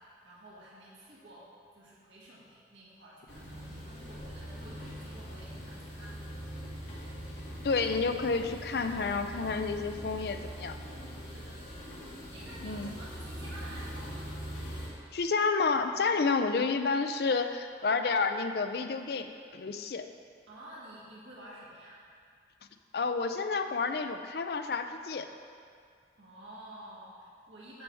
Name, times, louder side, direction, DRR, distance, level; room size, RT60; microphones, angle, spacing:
voice 1, 0.0-1.5 1.7-6.4 11.2-11.8 12.1-14.3 20.5-22.0 26.2-27.8, right 1 dB, 85° right, -7 dB, 1.8 m, -51 dB
sound 1, 3.3-14.9, equal, 75° left, 1.9 m, -42 dB
voice 2, 7.6-10.8 12.6-12.9 15.1-20.1 22.9-25.3, left 4 dB, 60° left, 8 dB, 0.4 m, -30 dB
9.4 x 3.4 x 6.9 m, 2.2 s
head